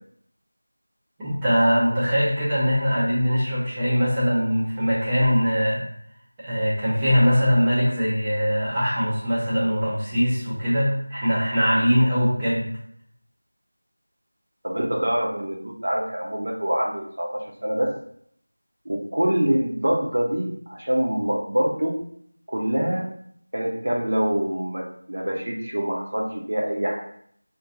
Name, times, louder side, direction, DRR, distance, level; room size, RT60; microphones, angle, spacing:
voice 1, 1.2-5.9 6.4-12.7, equal, 10° right, -9 dB, 0.6 m, -21 dB
voice 2, 14.6-17.9 18.9-22.0 22.5-23.1 23.5-27.0, right 1 dB, 55° right, 0 dB, 0.7 m, -25 dB
2.5 x 2.3 x 3.7 m, 0.66 s
figure-of-eight pair, 175°, 0 cm